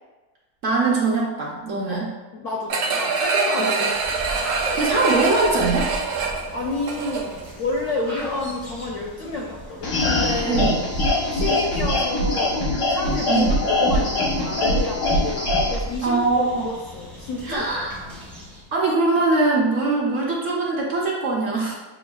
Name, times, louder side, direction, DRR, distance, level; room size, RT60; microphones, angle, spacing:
voice 1, 0.6-2.1 3.6-3.7 4.8-5.9 10.5-10.8 13.3-13.5 16.0-16.7 17.4-18.0 18.7-21.8, right 3 dB, 60° right, -4 dB, 0.9 m, -22 dB
voice 2, 2.3-4.0 6.5-10.7 11.3-18.3, left 2 dB, 70° left, -2 dB, 0.7 m, -29 dB
sound 1, 2.7-7.5 7.9-8.0, right 4 dB, 80° right, 1.2 m, -24 dB
sound 2, 3.9-18.8, right 1 dB, ahead, 0.4 m, -38 dB
sound 3, 9.8-15.8, left 1 dB, 85° left, 1.5 m, -22 dB
7.0 x 2.4 x 2.3 m, 1.2 s
omnidirectional pair, 1.7 m